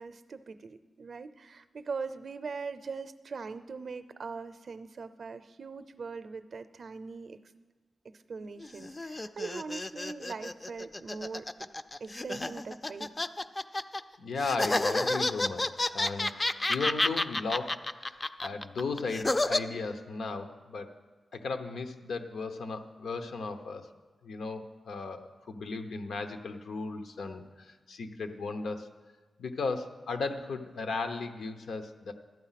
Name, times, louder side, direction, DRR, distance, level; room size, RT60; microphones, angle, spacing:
voice 1, 0.0-7.4 8.3-11.7 12.0-13.1, right 4 dB, 50° right, 11 dB, 0.5 m, -41 dB
sound 1, 8.6-14.0 14.4-19.6, left 2 dB, 20° left, 0.3 m, -30 dB
voice 2, 14.2-20.9 21.3-23.9 24.2-28.9 29.4-32.1, left 4 dB, 90° left, 7 dB, 0.9 m, -36 dB
12.5 x 8.9 x 5.8 m, 1.3 s
wide cardioid pair, 165°, 0 cm